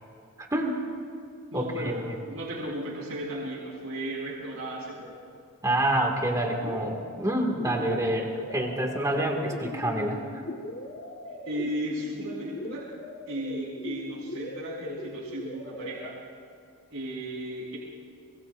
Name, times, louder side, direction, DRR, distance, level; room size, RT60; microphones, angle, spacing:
voice 1, 0.4-0.8 1.5-1.9 5.6-10.4, right 1 dB, 15° right, 1 dB, 2.0 m, -27 dB
voice 2, 1.5-5.2 11.4-12.9 13.3-16.2 16.9-17.8, right 1 dB, 70° right, -5 dB, 4.4 m, -35 dB
sound 1, 6.6-16.1, left 1 dB, 50° left, 1.4 m, -40 dB
25.0 x 21.5 x 2.6 m, 2.5 s
head